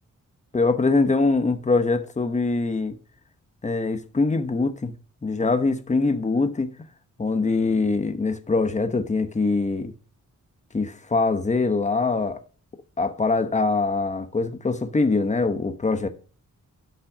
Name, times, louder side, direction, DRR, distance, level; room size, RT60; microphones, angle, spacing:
voice 1, 0.5-3.0 3.6-4.9 5.2-6.7 7.2-9.9 10.7-12.4 13.0-16.1, left 3 dB, 20° left, 1.0 m, -23 dB
12.5 x 5.6 x 5.0 m
wide cardioid pair, 130°, 31 cm